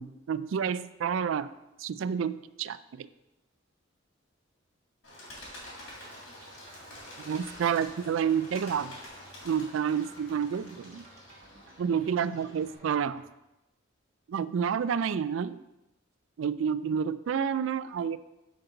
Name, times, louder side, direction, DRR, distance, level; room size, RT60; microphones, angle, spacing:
voice 1, 0.0-1.5 1.8-3.1 7.2-9.0 9.4-11.1 11.8-13.2 14.3-15.6 16.4-18.2, right 7 dB, 75° right, 15 dB, 0.3 m, -29 dB
Bird, 5.0-12.8, left 1 dB, 80° left, 3.2 m, -48 dB
sound 1, 5.4-13.3, right 2 dB, 35° right, 1.3 m, -57 dB
10.0 x 5.3 x 3.9 m, 0.96 s
head